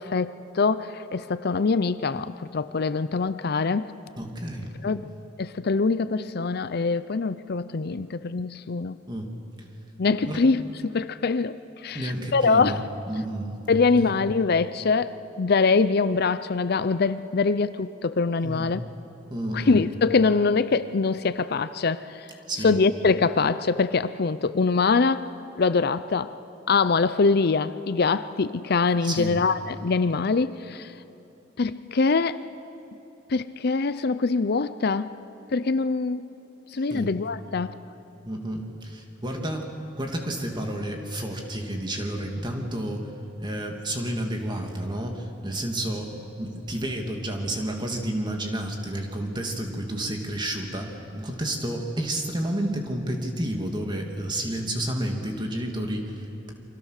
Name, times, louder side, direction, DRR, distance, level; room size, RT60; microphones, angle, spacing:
voice 1, 0.0-3.9 4.8-5.1 5.4-9.0 10.0-12.8 13.7-18.8 19.5-22.3 22.6-25.3 25.6-26.3 26.7-30.9 31.6-32.4 33.3-35.1 35.5-36.3 36.7-37.8, left 4 dB, 55° left, 0.5 m, -24 dB
voice 2, 4.2-4.7 9.1-9.3 10.2-10.4 11.9-13.6 14.0-14.1 18.4-18.7 19.3-19.8 22.5-22.7 29.0-29.4 36.7-37.1 38.2-43.1 43.4-56.5, right 1 dB, 25° right, 2.6 m, -31 dB
29.0 x 24.5 x 6.6 m
head